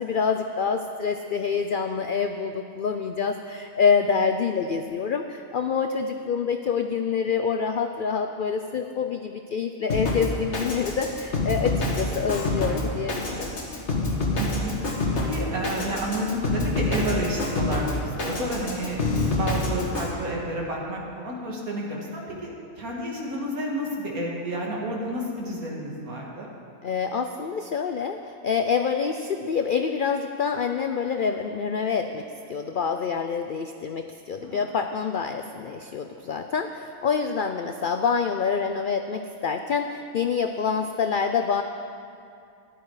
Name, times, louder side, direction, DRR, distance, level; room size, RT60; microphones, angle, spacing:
voice 1, 0.0-13.6 26.8-41.6, left 6 dB, 80° left, 6 dB, 0.4 m, -26 dB
Drum kit, 9.9-20.1, left 2 dB, 55° left, 1.8 m, -27 dB
voice 2, 14.3-14.7 15.1-22.5 22.8-26.5 34.4-34.6, right 1 dB, 80° right, -2 dB, 2.4 m, -30 dB
13.5 x 11.0 x 4.8 m, 2.5 s
omnidirectional pair, 1.5 m